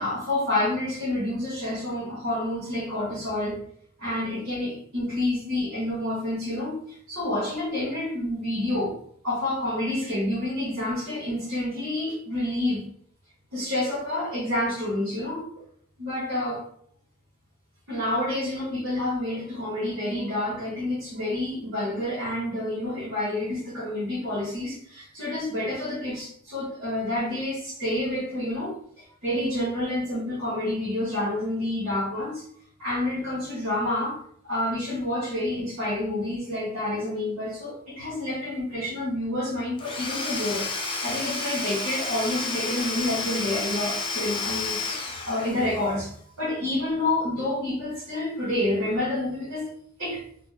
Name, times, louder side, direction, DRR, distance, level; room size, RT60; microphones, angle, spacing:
voice 1, 0.0-3.6 4.0-9.0 9.2-12.8 13.5-15.7 16.0-16.6 17.9-32.5 32.8-34.2 34.4-40.7 41.0-49.7 50.0-50.2, left 1 dB, 65° right, -7 dB, 0.9 m, -28 dB
Domestic sounds home sounds / Tools, 39.8-45.9, left 3 dB, 25° left, 0.3 m, -31 dB
2.3 x 2.0 x 3.6 m, 0.63 s
head